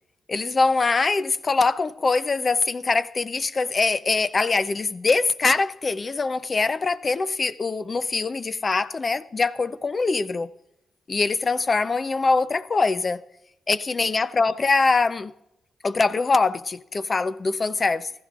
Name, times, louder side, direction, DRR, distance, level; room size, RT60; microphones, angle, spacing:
voice 1, 0.3-10.5 11.1-13.2 13.7-15.3 15.8-18.1, left 3 dB, 40° left, 0.6 m, -23 dB
15.5 x 14.0 x 2.4 m
cardioid pair, 65°, 0 cm